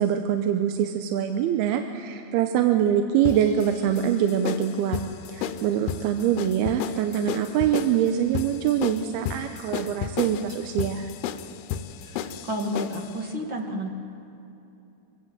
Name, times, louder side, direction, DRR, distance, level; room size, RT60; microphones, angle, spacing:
voice 1, 0.0-5.0 5.3-11.1, right 9 dB, 85° right, 6 dB, 2.7 m, -24 dB
sound 1, 3.3-13.1, left 9 dB, 85° left, 2.7 m, -33 dB
voice 2, 12.0-13.9, equal, 45° right, 1 dB, 1.7 m, -31 dB
25.5 x 17.0 x 7.8 m, 2.8 s
omnidirectional pair, 4.5 m